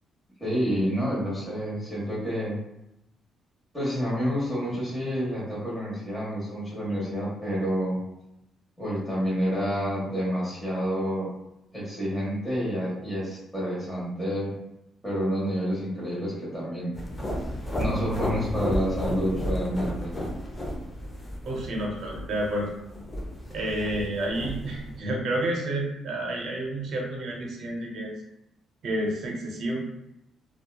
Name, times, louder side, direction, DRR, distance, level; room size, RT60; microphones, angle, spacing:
voice 1, 0.4-2.6 3.7-8.0 8.8-11.3 11.7-14.5 15.0-16.9 17.8-20.1, equal, 10° left, -8 dB, 1.2 m, -28 dB
sound 1, 16.9-25.0, equal, 25° left, 0.6 m, -33 dB
voice 2, 21.4-22.7 23.5-28.1 28.8-29.8, right 1 dB, 65° right, -1 dB, 0.7 m, -30 dB
2.7 x 2.4 x 2.2 m, 0.85 s
cardioid pair, 90°, 0 cm